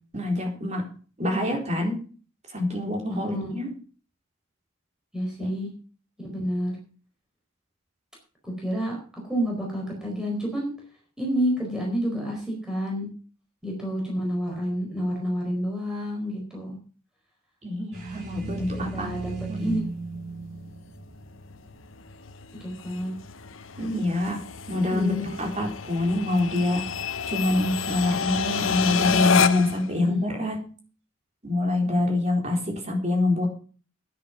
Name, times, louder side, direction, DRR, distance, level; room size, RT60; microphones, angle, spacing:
voice 1, 0.1-0.9 1.2-2.0 2.5-3.7 5.4-5.5 17.6-19.1 19.5-19.8 23.8-24.4 24.7-26.8 27.3-30.7 31.4-33.5, left 2 dB, 35° right, 1 dB, 4.1 m, -26 dB
voice 2, 3.1-3.6 5.1-5.7 6.2-6.7 8.4-9.0 9.2-10.7 11.2-13.1 13.6-16.8 18.9-19.8 22.6-23.1 24.9-25.3 29.9-30.3, equal, 5° right, -2 dB, 4.5 m, -29 dB
sound 1, 17.9-21.8, right 3 dB, 50° right, 7.0 m, -34 dB
sound 2, 19.6-29.8, left 6 dB, 70° left, 1.0 m, -30 dB
10.5 x 10.0 x 5.9 m, 0.39 s
head